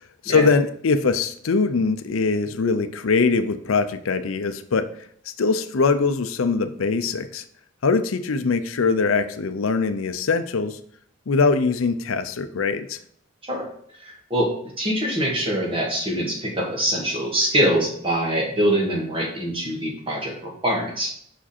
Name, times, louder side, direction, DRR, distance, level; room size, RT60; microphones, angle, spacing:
voice 1, 0.2-4.9 5.3-7.4 7.8-10.8 11.3-13.0, left 4 dB, 80° left, 10 dB, 0.5 m, -22 dB
voice 2, 14.0-21.1, right 1 dB, 25° right, -1 dB, 1.7 m, -24 dB
5.9 x 4.8 x 4.3 m, 0.64 s
head